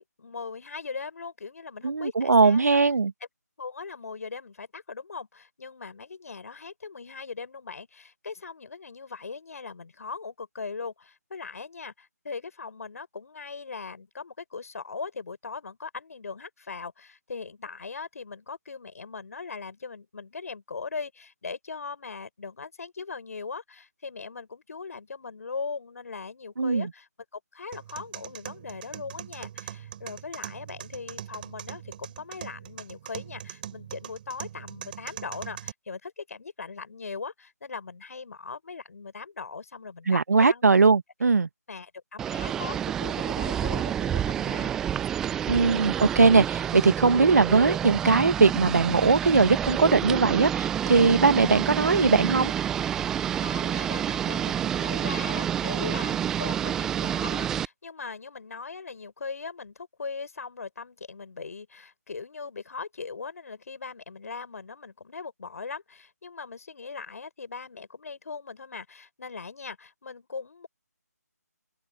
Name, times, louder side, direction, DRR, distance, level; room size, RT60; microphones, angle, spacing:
voice 1, 0.0-2.6 3.6-40.6 41.7-44.7 53.4-70.7, left 4 dB, 60° left, 6.9 m, -39 dB
voice 2, 1.8-3.1 26.6-26.9 40.1-41.5 45.5-52.5, right 4 dB, 70° right, 1.6 m, -20 dB
sound 1, 27.7-35.7, right 10 dB, 30° right, 4.6 m, -41 dB
sound 2, 42.2-57.7, right 9 dB, 5° right, 0.4 m, -29 dB
open air
figure-of-eight pair, 155°, 9 cm